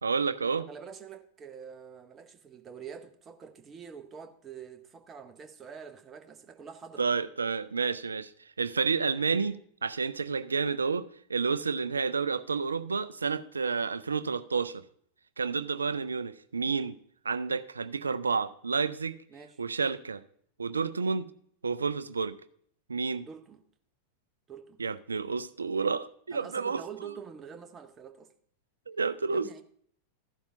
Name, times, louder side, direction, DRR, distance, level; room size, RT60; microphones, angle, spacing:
voice 1, 0.0-0.7 7.0-8.3 8.6-9.6 9.8-11.0 11.3-14.8 15.4-16.9 17.2-19.1 19.6-20.2 20.6-21.3 21.6-22.3 22.9-23.3 24.8-26.8 28.9-29.6, right 5 dB, 75° right, 0.4 m, -30 dB
voice 2, 0.6-7.1 19.3-19.6 23.2-23.6 24.5-24.8 26.3-28.3 29.3-29.6, right 7 dB, 25° right, 0.9 m, -46 dB
14.0 x 11.5 x 2.6 m
figure-of-eight pair, 90°, 0 cm